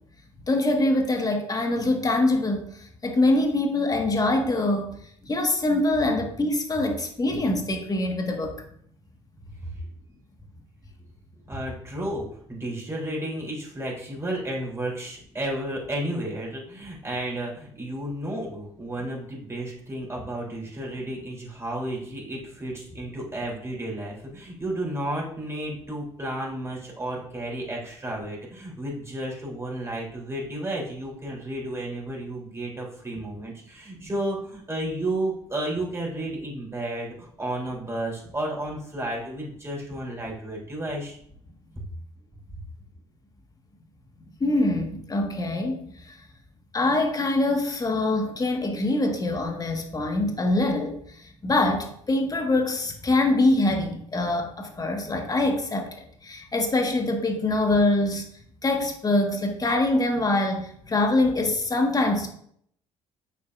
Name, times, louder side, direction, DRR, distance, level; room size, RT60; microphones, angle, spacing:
voice 1, 0.5-5.0 5.2-8.5 34.0-34.1 44.4-46.2 46.7-50.9 51.4-55.9 56.2-58.2 58.6-62.3, left 2 dB, 25° left, 3 dB, 1.7 m, -24 dB
voice 2, 11.5-41.2, right 1 dB, 15° right, -3 dB, 3.5 m, -32 dB
8.4 x 7.2 x 2.6 m, 0.65 s
figure-of-eight pair, 55°, 16 cm